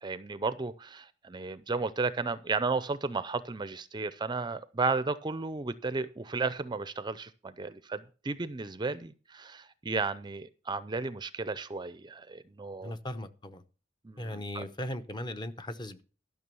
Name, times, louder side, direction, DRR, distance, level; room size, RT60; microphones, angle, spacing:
voice 1, 0.0-12.9 14.0-14.6, right 4 dB, 25° right, 0.5 m, -34 dB
voice 2, 12.8-13.6 14.2-16.0, left 1 dB, 25° left, 0.8 m, -38 dB
12.5 x 6.0 x 6.9 m
head